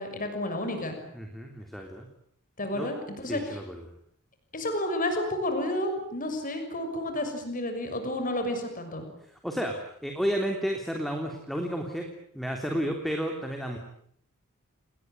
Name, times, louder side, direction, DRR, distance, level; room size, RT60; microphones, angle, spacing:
voice 1, 0.0-1.0 2.6-3.6 4.5-9.0, left 1 dB, 40° left, 6 dB, 6.3 m, -31 dB
voice 2, 1.1-2.1 2.7-2.9 3.3-3.8 9.4-9.7 10.0-12.1 12.3-13.8, equal, ahead, 2 dB, 3.3 m, -31 dB
29.5 x 20.5 x 9.3 m, 0.66 s
head